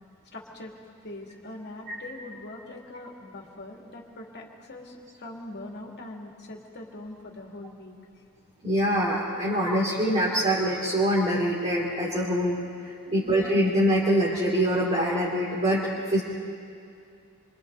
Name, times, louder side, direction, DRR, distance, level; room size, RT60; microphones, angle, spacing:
voice 1, 0.3-0.7 1.0-7.9 13.1-13.4, left 2 dB, 50° left, 0 dB, 2.6 m, -42 dB
voice 2, 8.6-12.6 13.1-15.8 16.1-16.2, equal, 30° right, -6 dB, 2.8 m, -24 dB
27.0 x 25.0 x 4.0 m, 2.4 s
head